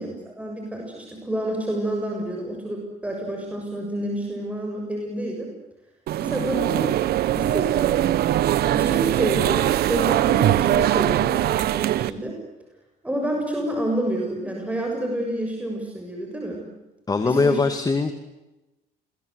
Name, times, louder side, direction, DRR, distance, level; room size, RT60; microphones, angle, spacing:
voice 1, 0.0-5.5 6.2-6.9 7.3-8.1 8.7-12.4 13.0-16.6 17.2-17.6, right 1 dB, 10° right, 0 dB, 7.1 m, -29 dB
sound 1, 6.1-12.1, right 13 dB, 70° right, 1.3 m, -21 dB
voice 2, 17.1-18.1, left 4 dB, 20° left, 8 dB, 2.2 m, -21 dB
29.0 x 23.5 x 8.1 m, 1.0 s
cardioid pair, 110°, 17 cm